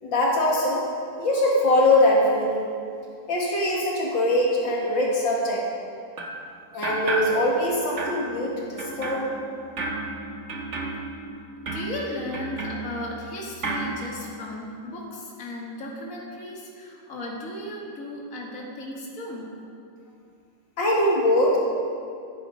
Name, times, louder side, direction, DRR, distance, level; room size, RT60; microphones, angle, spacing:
voice 1, 0.0-0.8 1.2-2.7 3.3-5.6 6.7-9.3 20.8-21.6, left 1 dB, 65° left, -3 dB, 2.5 m, -22 dB
sound 1, 6.2-6.5 6.8-7.7 8.0-13.3 13.6-14.0, right 2 dB, 40° right, 1.3 m, -32 dB
voice 2, 11.7-19.7 20.0-20.2, left 1 dB, 40° left, -3 dB, 2.4 m, -36 dB
17.5 x 9.4 x 5.1 m, 2.4 s
omnidirectional pair, 2.2 m